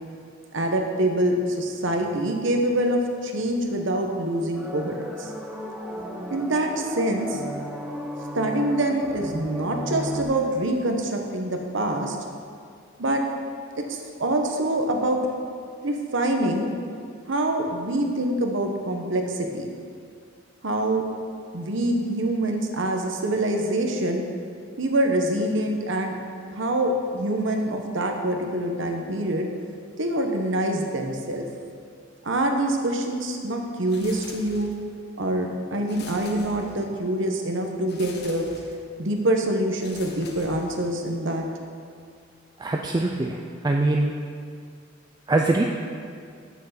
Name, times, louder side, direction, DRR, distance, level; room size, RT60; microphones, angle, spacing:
voice 1, 0.5-5.3 6.3-7.4 8.3-12.2 13.0-13.2 13.9-15.2 15.8-16.7 17.3-19.7 20.6-21.0 21.5-24.2 24.8-26.2 26.5-29.5 30.0-31.4 32.2-34.7 35.2-38.4 39.0-41.4, right 1 dB, 70° right, 3 dB, 1.1 m, -25 dB
sound 1, 4.5-10.2, equal, 5° right, 0.8 m, -34 dB
sound 2, 33.9-35.0 35.9-37.1 37.9-38.9 39.8-41.1, left 3 dB, 55° left, 1.0 m, -44 dB
voice 2, 42.6-44.1 45.3-45.6, right 2 dB, 20° right, 1 dB, 0.4 m, -23 dB
8.0 x 6.5 x 6.6 m, 2.3 s
head